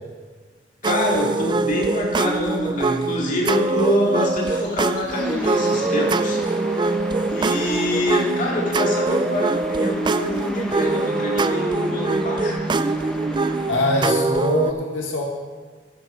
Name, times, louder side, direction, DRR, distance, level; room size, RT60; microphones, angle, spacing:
voice 1, 0.8-6.4 7.3-12.6, left 1 dB, 45° left, -2 dB, 2.6 m, -25 dB
sound 1, 0.8-14.7, right 3 dB, 25° right, 0.3 m, -23 dB
Insect, 3.5-11.1, equal, 65° left, 3.5 m, -43 dB
sound 2, 5.1-14.1, equal, 5° left, 1.0 m, -34 dB
voice 2, 13.7-15.2, left 2 dB, 90° left, 0 dB, 1.7 m, -23 dB
14.5 x 10.5 x 3.9 m, 1.5 s
head